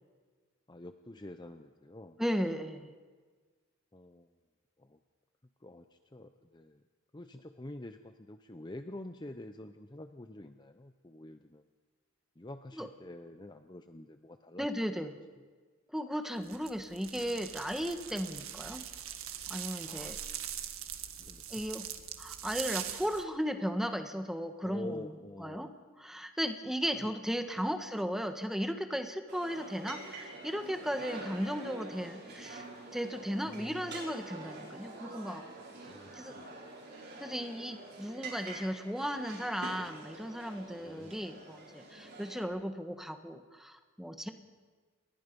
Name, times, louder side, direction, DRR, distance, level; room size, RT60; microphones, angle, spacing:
voice 1, 0.7-2.2 3.9-4.3 4.8-5.0 5.6-6.8 7.1-11.7 12.4-14.7 15.4-15.5 19.8-20.2 21.2-21.5 24.6-25.7 26.9-27.1 27.6-27.8 33.4-34.0 35.8-36.7 40.8-41.2, left 1 dB, 20° left, 8 dB, 0.7 m, -47 dB
voice 2, 2.2-2.9 12.8-12.9 14.6-15.1 15.9-18.8 19.5-20.2 21.5-21.9 22.2-25.1 25.4-25.7 26.0-32.6 32.9-35.4 36.1-36.4 37.2-44.3, equal, ahead, 7 dB, 1.4 m, -36 dB
sound 1, 16.4-23.2, right 10 dB, 75° right, 1.7 m, -42 dB
sound 2, 29.3-42.4, right 2 dB, 50° right, 6.7 m, -46 dB
29.0 x 22.5 x 5.4 m, 1.4 s
head